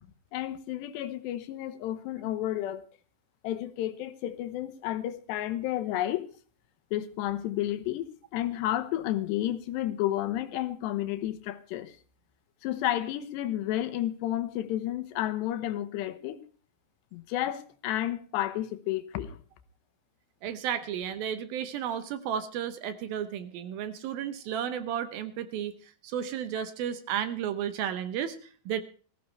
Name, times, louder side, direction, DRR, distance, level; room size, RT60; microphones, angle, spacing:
voice 1, 0.3-2.8 3.4-6.3 6.9-12.0 12.6-16.4 17.1-19.4, left 13 dB, 85° left, 3.2 m, -31 dB
voice 2, 20.4-28.8, right 9 dB, 70° right, 2.5 m, -33 dB
19.5 x 15.0 x 3.2 m
omnidirectional pair, 4.8 m